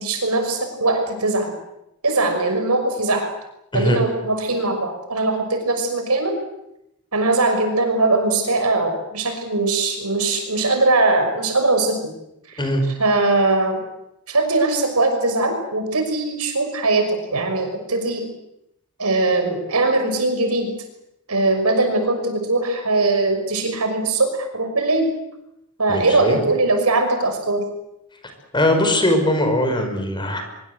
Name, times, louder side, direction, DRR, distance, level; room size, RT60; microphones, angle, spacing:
voice 1, 0.0-1.5 2.0-3.3 3.7-6.4 7.1-12.0 12.5-12.6 13.0-13.8 14.3-18.3 19.0-20.7 21.3-25.1 25.8-27.6, right 2 dB, 80° right, 6 dB, 5.9 m, -20 dB
voice 2, 25.9-26.4 28.5-30.4, left 1 dB, 20° left, 5 dB, 5.2 m, -20 dB
24.0 x 23.5 x 8.1 m, 0.84 s
head